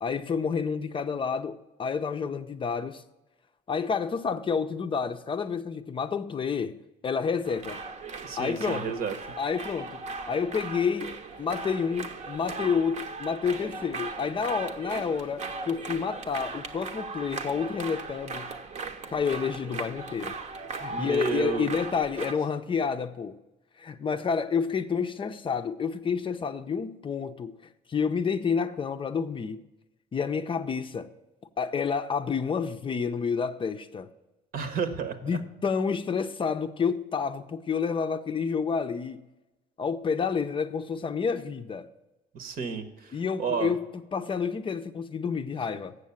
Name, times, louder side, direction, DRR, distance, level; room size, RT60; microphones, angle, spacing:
voice 1, 0.0-3.0 3.7-7.8 8.4-9.0 9.4-10.0 10.3-18.5 19.1-20.4 20.8-23.4 23.8-27.6 27.9-29.6 30.1-31.1 31.6-34.1 35.2-39.2 39.8-41.9 43.1-46.0, left 6 dB, 30° left, 0.5 m, -29 dB
sound 1, 7.4-22.3, right 4 dB, 45° right, 0.8 m, -38 dB
voice 2, 8.2-9.4 20.9-21.7 34.5-35.2 42.3-43.1 43.4-43.7, right 6 dB, 60° right, 1.1 m, -31 dB
8.2 x 6.3 x 7.1 m
cardioid pair, 110°, 17 cm